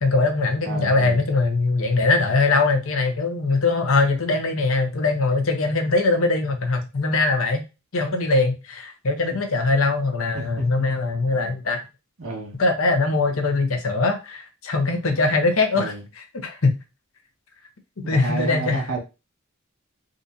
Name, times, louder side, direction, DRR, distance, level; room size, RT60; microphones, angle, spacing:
voice 1, 0.0-7.6 7.9-11.8 12.6-16.8 18.0-18.9, left 3 dB, 75° left, 5 dB, 0.8 m, -21 dB
voice 2, 0.6-1.2 10.3-10.8 12.2-12.6 15.7-16.0 18.0-19.0, right 2 dB, 75° right, 0 dB, 1.6 m, -30 dB
3.7 x 2.7 x 2.7 m, 0.27 s
head